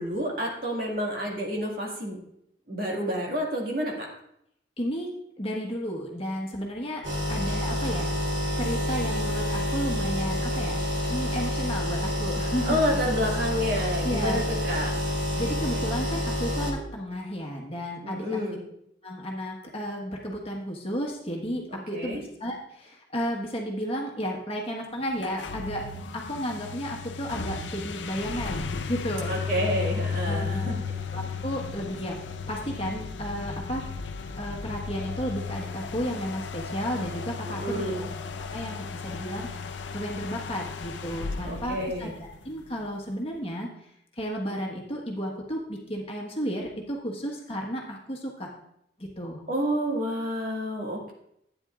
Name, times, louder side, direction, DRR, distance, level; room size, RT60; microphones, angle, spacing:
voice 1, 0.0-2.2 2.7-4.1 12.7-15.0 18.0-18.6 21.9-22.2 29.3-30.8 37.5-38.1 41.4-42.1 49.5-51.1, equal, 50° right, -2 dB, 2.1 m, -29 dB
voice 2, 4.8-5.1 5.4-7.0 7.3-8.3 8.6-10.8 11.1-12.8 14.0-14.5 15.3-18.4 19.0-25.8 26.1-29.3 30.2-30.7 31.1-32.2 32.5-33.8 34.4-37.9 38.5-39.5 39.9-43.7 44.2-48.5 49.0-49.4, equal, 30° left, -1 dB, 1.4 m, -33 dB
sound 1, 7.0-16.7, equal, 85° right, 2.6 m, -28 dB
sound 2, 25.1-42.6, left 5 dB, 80° left, 0.6 m, -35 dB
11.5 x 9.2 x 2.5 m, 0.76 s
head